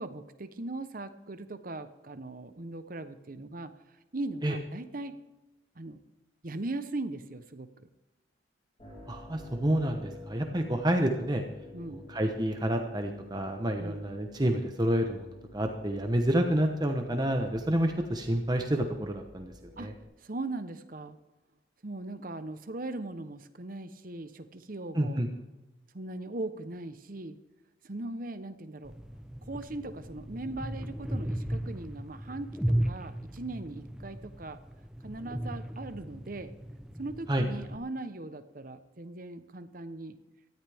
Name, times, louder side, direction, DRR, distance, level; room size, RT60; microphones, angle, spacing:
voice 1, 0.0-3.7 4.1-5.2 5.8-6.0 6.4-7.9 10.7-10.8 11.7-12.0 13.8-14.0 19.8-19.9 20.2-21.2 21.8-25.2 25.9-27.4 27.8-29.0 29.4-34.6 35.0-36.5 37.0-40.2, right 2 dB, 45° right, 10 dB, 0.9 m, -39 dB
sound 1, 8.8-20.0, left 2 dB, 30° left, 4.2 m, -50 dB
voice 2, 9.1-11.4 11.9-19.9 24.9-25.3 37.3-37.4, right 1 dB, 20° right, 4 dB, 1.0 m, -29 dB
sound 2, 28.8-37.8, right 1 dB, 5° right, 0.6 m, -36 dB
17.5 x 13.5 x 3.5 m, 1.1 s
head